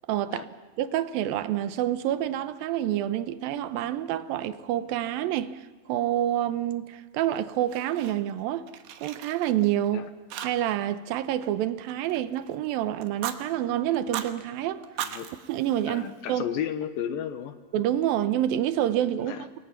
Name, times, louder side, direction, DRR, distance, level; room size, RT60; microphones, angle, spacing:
voice 1, 0.1-0.5 0.8-8.7 9.0-10.1 10.4-14.8 15.5-16.4 17.7-19.4, right 12 dB, 75° right, 2.5 m, -27 dB
Fire, 7.3-8.4 8.7-9.9 10.3-10.9 11.1-12.5 13.0-13.4 13.9-14.3 14.8-16.4, right 11 dB, 90° right, 3.3 m, -38 dB
voice 2, 15.9-17.6 19.2-19.5, left 9 dB, 70° left, 2.6 m, -33 dB
29.0 x 22.5 x 5.9 m
omnidirectional pair, 4.5 m